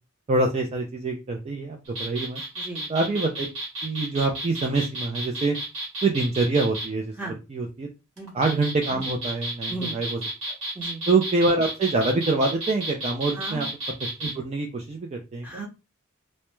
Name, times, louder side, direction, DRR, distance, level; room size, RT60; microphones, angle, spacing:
voice 1, 0.3-2.4 2.9-3.5 3.8-5.6 6.0-7.2 7.5-7.9 8.3-10.2 10.5-10.6 11.1-13.7 14.2-15.5, right 3 dB, 30° right, 2 dB, 0.3 m, -25 dB
sound 1, 1.9-6.9 8.2-14.3, right 1 dB, 80° right, 1.1 m, -32 dB
voice 2, 2.6-2.9 7.2-7.4 8.2-8.3 9.7-9.9 10.7-11.0 13.4-13.6 15.4-15.7, right 2 dB, 10° right, -2 dB, 0.7 m, -35 dB
2.2 x 2.0 x 3.0 m, 0.27 s
head